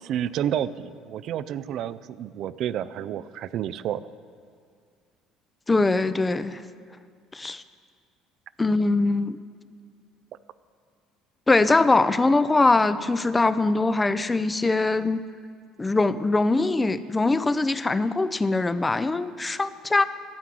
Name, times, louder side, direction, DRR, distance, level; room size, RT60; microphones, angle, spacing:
voice 1, 0.0-4.1, right 10 dB, 60° right, 16 dB, 0.3 m, -30 dB
voice 2, 5.7-6.6 7.3-7.6 8.6-9.4 11.5-15.2 15.8-20.0, left 3 dB, 20° left, 13 dB, 0.5 m, -22 dB
13.5 x 4.6 x 7.5 m, 2.2 s
hypercardioid pair, 60°, 0 cm